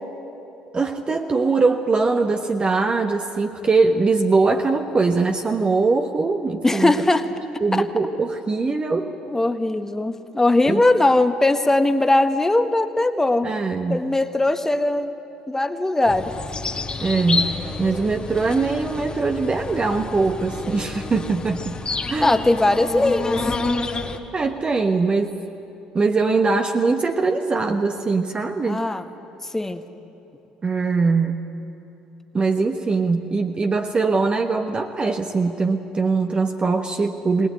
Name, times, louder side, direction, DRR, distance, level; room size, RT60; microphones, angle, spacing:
voice 1, 0.7-6.9 7.6-9.1 10.7-10.8 13.4-14.0 17.0-17.5 17.8-21.7 22.1-22.3 24.3-25.3 25.9-28.8 30.6-31.4 32.3-37.5, right 4 dB, 30° right, 4 dB, 1.2 m, -21 dB
voice 2, 6.6-7.3 7.7-7.8 9.3-13.5 13.9-15.1 15.5-16.3 22.2-23.4 28.6-29.0 29.5-29.8, left 2 dB, 15° left, 8 dB, 1.4 m, -20 dB
sound 1, 16.1-24.2, left 3 dB, 30° left, 1.7 m, -29 dB
21.0 x 19.0 x 9.4 m, 3.0 s
hypercardioid pair, 60°, 3 cm